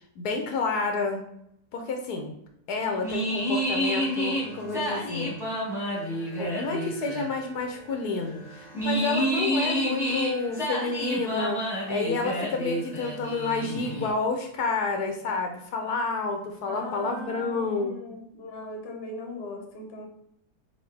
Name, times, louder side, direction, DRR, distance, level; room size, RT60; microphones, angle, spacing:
voice 1, 0.2-1.2 1.7-2.3 2.7-5.4 6.4-11.6 11.9-18.0, left 4 dB, 75° left, 4 dB, 1.1 m, -29 dB
sound 1, 3.0-14.1, equal, ahead, 1.2 m, -30 dB
voice 2, 16.7-20.1, left 1 dB, 45° left, 2 dB, 0.9 m, -39 dB
4.1 x 3.9 x 3.3 m, 0.75 s
omnidirectional pair, 1.8 m